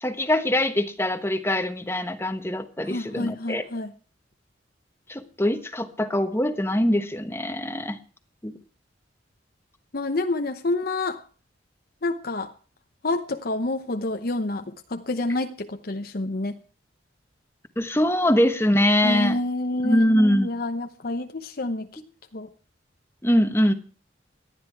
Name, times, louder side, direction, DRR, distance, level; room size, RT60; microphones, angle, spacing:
voice 1, 0.0-3.6 5.1-8.0 8.4-8.5 17.8-19.4 19.8-20.5 23.2-23.7, left 1 dB, 15° left, 9 dB, 1.2 m, -23 dB
voice 2, 2.8-3.9 9.9-11.2 12.0-12.5 13.0-16.6 19.0-20.0 20.4-21.9 22.3-22.5, left 2 dB, 50° left, 7 dB, 0.8 m, -28 dB
18.5 x 12.0 x 4.6 m, 0.39 s
head